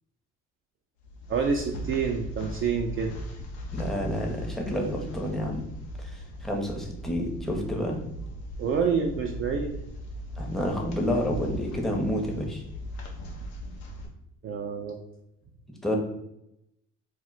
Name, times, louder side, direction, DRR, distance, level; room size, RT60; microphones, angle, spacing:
sound 1, 1.0-14.1, equal, 80° left, 0.6 m, -38 dB
voice 1, 1.3-3.2 8.6-9.7 14.4-15.0, right 5 dB, 40° right, 2 dB, 0.4 m, -27 dB
voice 2, 3.7-5.6 6.0-8.0 10.4-12.6 15.8-16.0, equal, ahead, 0 dB, 0.7 m, -29 dB
2.1 x 2.1 x 3.8 m, 0.81 s
hypercardioid pair, 55°, 34 cm